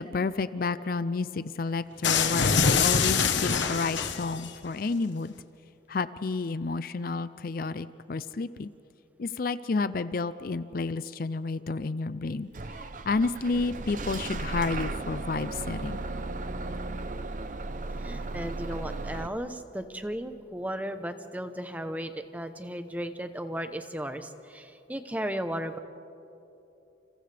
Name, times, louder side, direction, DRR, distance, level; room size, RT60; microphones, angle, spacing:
voice 1, 0.0-5.3 5.9-8.7 9.2-12.5 13.0-16.0, left 3 dB, 50° left, 14 dB, 0.4 m, -30 dB
sound 1, 2.0-4.5, left 5 dB, 75° left, 1.2 m, -24 dB
Bus / Engine starting, 12.5-19.3, right 2 dB, 40° right, 0.7 m, -35 dB
voice 2, 18.0-25.8, equal, 10° right, 8 dB, 0.8 m, -35 dB
29.5 x 29.0 x 3.4 m, 2.9 s
head